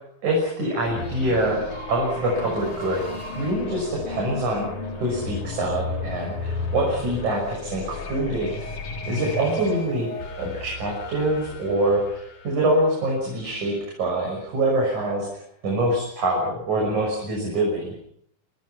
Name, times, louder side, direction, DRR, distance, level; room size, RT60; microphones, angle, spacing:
voice 1, 0.2-3.1 3.4-4.7 5.0-8.5 9.1-10.1 10.4-17.9, right 1 dB, 50° right, -1 dB, 7.7 m, -25 dB
sound 1, 0.9-13.6, left 3 dB, 55° left, 4.7 m, -34 dB
27.5 x 26.5 x 5.9 m, 0.69 s
omnidirectional pair, 4.2 m